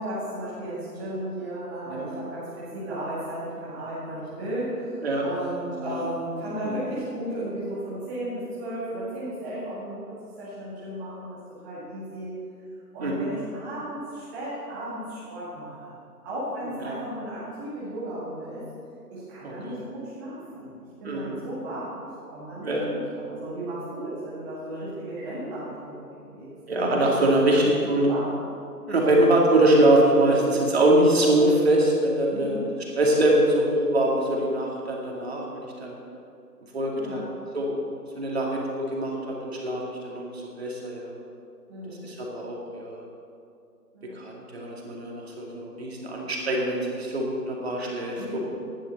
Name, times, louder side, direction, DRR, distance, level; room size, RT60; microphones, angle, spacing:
voice 1, 0.0-11.4 11.6-12.3 12.9-16.0 16.2-18.6 19.1-20.7 21.0-21.9 22.2-26.5 27.4-28.3 32.3-32.7 37.0-37.3 41.7-42.1 43.9-44.2 48.2-48.4, right 1 dB, 10° right, -10 dB, 1.7 m, -35 dB
voice 2, 5.7-6.0 6.7-6.8 13.0-13.3 16.8-17.0 19.4-19.8 21.1-21.4 22.6-22.9 26.7-28.1 28.9-32.6 33.0-36.0 36.7-37.2 37.5-37.8 38.1-41.1 42.0-43.0 44.1-48.2, right 1 dB, 40° right, -2 dB, 2.5 m, -23 dB
16.0 x 11.0 x 4.1 m, 2.5 s
figure-of-eight pair, 155°, 49 cm